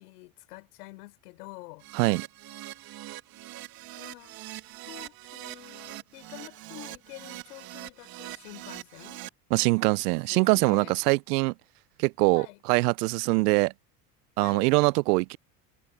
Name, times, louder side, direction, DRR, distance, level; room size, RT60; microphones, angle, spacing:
voice 1, 0.0-1.9 4.0-4.4 4.9-9.2 10.3-11.1 12.3-12.6 14.4-14.7, left 21 dB, 75° left, 4.1 m, -47 dB
Keyboard (musical), 1.8-9.3, right 16 dB, 50° right, 1.4 m, -43 dB
voice 2, 9.5-11.5 12.0-13.7 14.4-15.4, right 24 dB, 80° right, 0.5 m, -23 dB
supercardioid pair, 95°, 46 cm